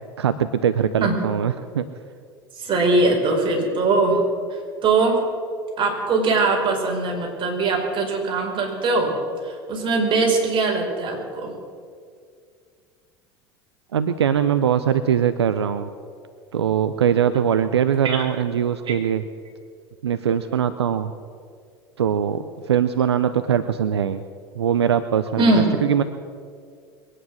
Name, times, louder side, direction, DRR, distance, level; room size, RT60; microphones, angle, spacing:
voice 1, 0.2-1.8 13.9-15.9 16.5-19.2 20.0-21.1 22.0-24.2 24.5-25.5 25.8-26.0, right 8 dB, 85° right, 11 dB, 0.6 m, -21 dB
voice 2, 2.6-4.2 4.5-5.2 5.8-9.1 9.4-11.5 18.0-18.2 25.4-25.7, right 3 dB, 40° right, 0 dB, 5.2 m, -21 dB
22.5 x 9.8 x 6.4 m, 2.1 s
hypercardioid pair, 80°, 14 cm